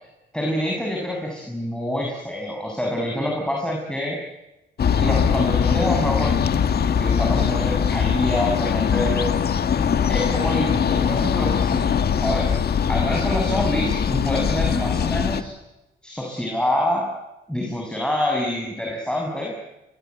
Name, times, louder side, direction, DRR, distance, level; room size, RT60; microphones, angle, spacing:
voice 1, 0.3-4.2 4.9-6.6 6.9-9.3 10.1-12.5 12.9-15.5 16.0-17.1 17.5-19.6, left 1 dB, 5° left, 0 dB, 6.7 m, -26 dB
sound 1, 4.8-15.4, left 7 dB, 55° left, 1.9 m, -21 dB
26.5 x 21.5 x 9.5 m, 0.98 s
cardioid pair, 90°, 20 cm